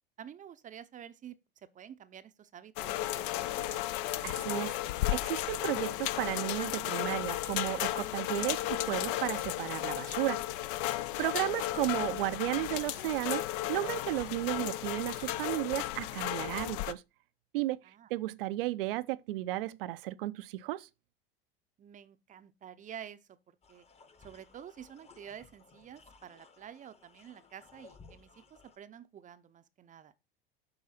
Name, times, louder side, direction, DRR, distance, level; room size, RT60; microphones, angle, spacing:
voice 1, 0.2-3.8 14.3-14.7 17.8-18.1 21.8-23.4 23.7-23.8 24.2-30.1, right 9 dB, 25° right, 0.6 m, -50 dB
sound 1, 2.8-16.9, left 15 dB, 60° left, 0.6 m, -34 dB
voice 2, 4.2-4.7 5.1-10.4 11.2-13.4 13.7-17.0 17.5-17.8 18.1-20.9, right 17 dB, 70° right, 0.5 m, -34 dB
sound 2, 23.6-28.8, left 4 dB, 20° left, 1.1 m, -59 dB
7.7 x 4.7 x 4.2 m
hypercardioid pair, 90°, 29 cm